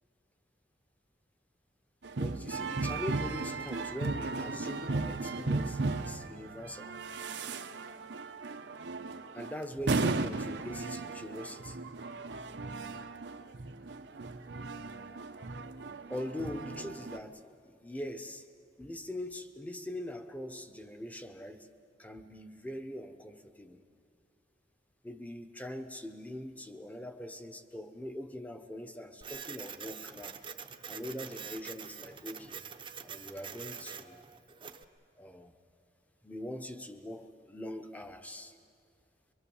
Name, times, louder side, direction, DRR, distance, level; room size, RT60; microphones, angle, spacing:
sound 1, 2.0-17.2, right 3 dB, 85° right, 0.8 m, -36 dB
voice 1, 2.2-7.0 9.3-11.8 16.1-18.4 18.8-21.7 22.0-23.8 25.0-30.4 30.9-32.6 33.0-34.2 35.1-35.6 36.2-38.5, left 1 dB, 10° left, 7 dB, 1.0 m, -42 dB
Printer, 29.2-34.8, right 7 dB, 30° right, 0.8 m, -45 dB
23.5 x 23.0 x 7.1 m, 2.2 s
head